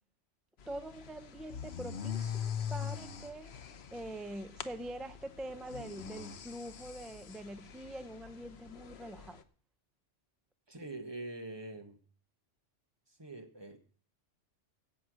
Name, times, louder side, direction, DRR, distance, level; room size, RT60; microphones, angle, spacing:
sound 1, 0.6-9.4, left 8 dB, 60° left, 1.1 m, -43 dB
voice 1, 0.7-3.5 3.9-9.4, right 1 dB, ahead, 0.6 m, -44 dB
voice 2, 10.7-12.0 13.1-13.8, right 2 dB, 20° right, 1.6 m, -44 dB
16.5 x 6.1 x 6.3 m
omnidirectional pair, 1.2 m